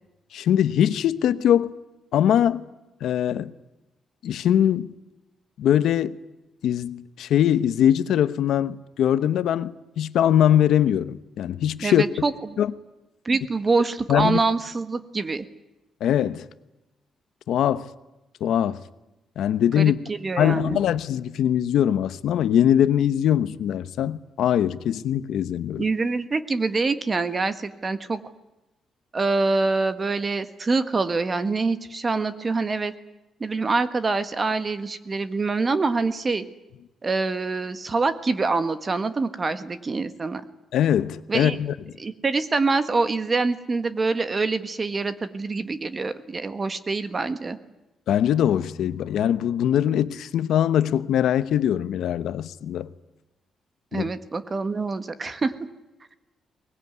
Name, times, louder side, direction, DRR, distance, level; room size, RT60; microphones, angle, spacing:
voice 1, 0.3-1.7 2.1-2.6 3.0-3.5 4.2-4.9 5.6-6.1 6.6-12.0 12.6-12.7 14.1-14.4 16.0-16.5 17.5-17.9 18.4-18.8 19.4-20.0 20.4-25.8 40.7-41.7 48.1-52.9 53.9-54.1, left 10 dB, 75° left, 1.0 m, -22 dB
voice 2, 11.8-12.3 13.2-15.5 19.7-20.8 25.8-28.2 29.1-32.9 33.4-36.4 37.0-40.4 41.3-41.6 42.0-47.6 53.9-55.5, right 3 dB, 25° right, 1.4 m, -25 dB
23.0 x 20.5 x 9.6 m
cardioid pair, 160°, 0 cm